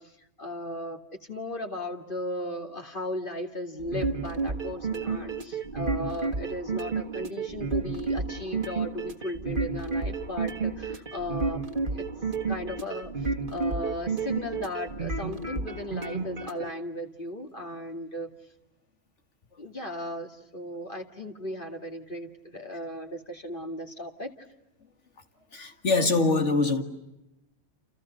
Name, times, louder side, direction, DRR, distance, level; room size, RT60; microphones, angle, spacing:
voice 1, 0.0-12.1 12.5-18.3 19.6-24.3, left 1 dB, 45° left, 2.5 m, -36 dB
sound 1, 3.8-16.7, right 4 dB, 45° right, 2.0 m, -31 dB
voice 2, 25.5-26.8, left 3 dB, 70° left, 2.3 m, -23 dB
29.5 x 29.5 x 6.6 m
omnidirectional pair, 1.3 m